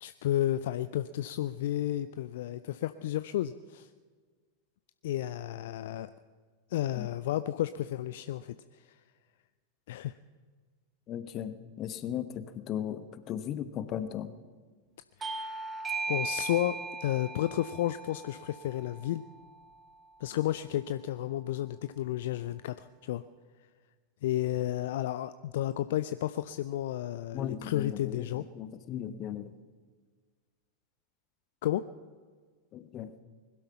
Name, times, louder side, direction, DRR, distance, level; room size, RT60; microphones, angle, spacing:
voice 1, 0.0-3.9 5.0-6.1 6.7-9.0 9.9-10.2 15.2-15.7 16.1-19.2 20.2-23.2 24.2-28.4 31.6-31.8, left 13 dB, 55° left, 13 dB, 0.4 m, -32 dB
voice 2, 11.1-14.3 27.3-29.5 32.7-33.1, left 10 dB, 35° left, 13 dB, 1.0 m, -37 dB
Bell / Doorbell, 15.2-20.3, right 4 dB, 15° right, 1.0 m, -38 dB
21.0 x 12.0 x 5.7 m, 1.5 s
figure-of-eight pair, 90°, 0 cm